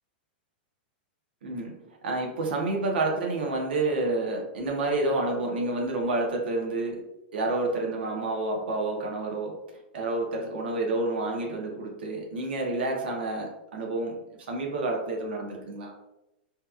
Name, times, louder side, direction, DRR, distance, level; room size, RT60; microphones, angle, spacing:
voice 1, 1.4-1.8 2.0-7.0 7.3-9.6 9.9-14.2 14.5-15.9, right 2 dB, 75° right, 0 dB, 0.7 m, -29 dB
2.8 x 2.2 x 2.3 m, 0.91 s
supercardioid pair, 165°, 6 cm